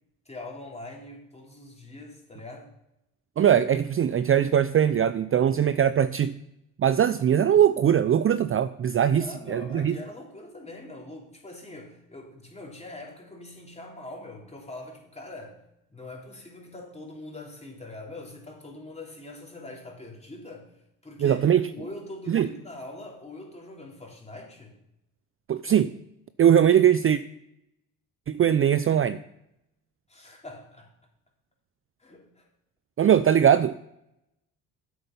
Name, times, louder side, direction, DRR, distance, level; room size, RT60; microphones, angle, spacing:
voice 1, 0.3-2.7 9.1-15.6 15.9-20.7 21.0-21.4 21.7-24.7 30.1-30.9 32.0-32.4, left 2 dB, 15° left, -1 dB, 3.9 m, -43 dB
voice 2, 3.4-6.3 6.8-10.0 21.2-21.7 22.3-22.5 25.5-25.9 26.4-27.2 28.3-29.2 33.0-33.7, right 9 dB, 35° right, 14 dB, 0.5 m, -21 dB
9.0 x 8.0 x 5.5 m, 0.81 s
supercardioid pair, 70°, 39 cm